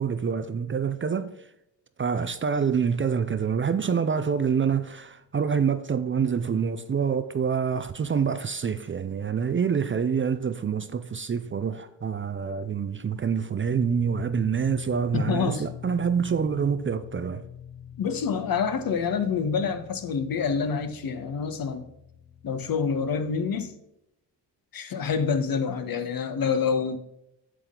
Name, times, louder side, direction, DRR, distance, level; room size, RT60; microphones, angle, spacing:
voice 1, 0.0-1.3 2.0-17.4, right 6 dB, 30° right, 0.5 m, -26 dB
sound 1, 13.6-23.7, left 8 dB, 30° left, 2.3 m, -44 dB
voice 2, 15.1-15.6 18.0-21.9 22.4-23.7 24.7-27.0, left 6 dB, 55° left, 1.2 m, -27 dB
8.0 x 7.6 x 3.8 m
cardioid pair, 95°, 43 cm